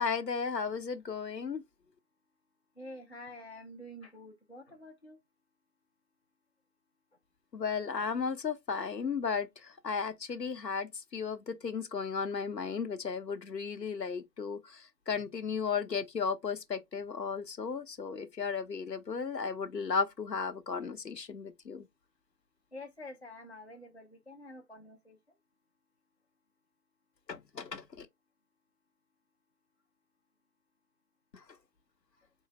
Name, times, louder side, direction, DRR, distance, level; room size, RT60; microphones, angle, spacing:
voice 1, 0.0-1.6 7.5-21.9 27.3-28.1 31.3-31.4, left 5 dB, 80° left, 0.8 m, -35 dB
voice 2, 2.8-5.2 22.7-25.2, left 1 dB, 45° left, 0.5 m, -48 dB
3.8 x 2.0 x 4.0 m
figure-of-eight pair, 165°, 49 cm